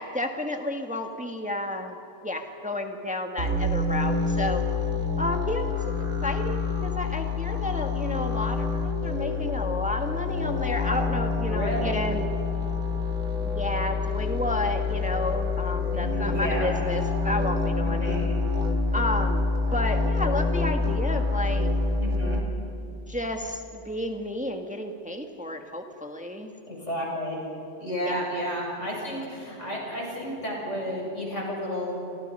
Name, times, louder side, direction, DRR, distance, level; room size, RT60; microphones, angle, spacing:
voice 1, 0.0-2.0 2.2-4.6 5.2-5.9 6.2-12.3 13.4-18.2 18.9-21.7 23.1-26.5 28.0-28.3, left 1 dB, 5° right, 4 dB, 1.5 m, -31 dB
sound 1, 3.4-22.4, left 4 dB, 85° right, 2.4 m, -27 dB
voice 2, 11.5-12.0 15.9-16.7 17.8-18.4 22.0-22.4 26.7-27.4 27.8-32.0, equal, 80° left, -2 dB, 7.2 m, -32 dB
29.0 x 24.5 x 5.5 m, 2.8 s
omnidirectional pair, 1.2 m